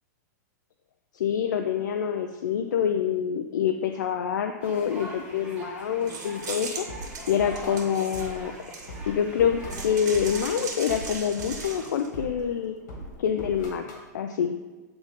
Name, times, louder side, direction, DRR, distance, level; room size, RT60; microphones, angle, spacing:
voice 1, 1.1-6.8 7.3-8.5 9.1-12.8 13.2-13.8 14.1-14.5, left 8 dB, 80° left, 6 dB, 0.4 m, -26 dB
sound 1, 4.6-10.7, right 1 dB, 15° right, 1.7 m, -43 dB
sound 2, 6.1-9.1 9.7-12.1, right 4 dB, 70° right, 2.1 m, -38 dB
sound 3, 6.5-14.1, equal, 65° left, 2.0 m, -42 dB
8.7 x 3.9 x 3.6 m, 1.2 s
hypercardioid pair, 135°, 10 cm